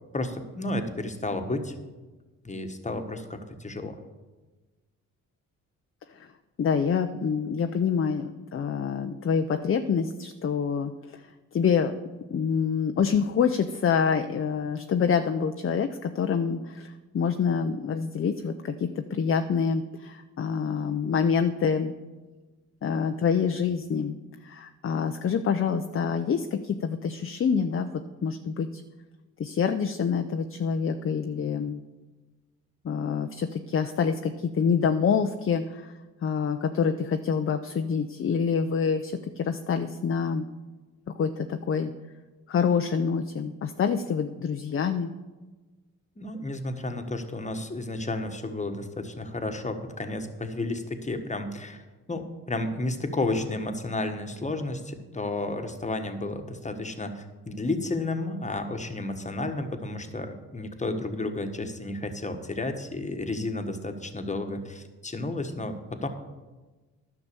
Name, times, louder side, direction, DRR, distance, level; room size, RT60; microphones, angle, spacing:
voice 1, 0.1-1.7 2.4-4.0 46.2-66.1, left 2 dB, 20° left, 6 dB, 1.4 m, -32 dB
voice 2, 6.6-11.2 11.5-12.0 12.3-21.9 22.8-24.2 24.4-28.8 29.4-31.8 32.8-35.9 36.2-40.4 41.2-41.9 42.5-45.1, left 6 dB, 40° left, 7 dB, 0.6 m, -26 dB
11.0 x 5.9 x 6.9 m, 1.2 s
supercardioid pair, 60°, 34 cm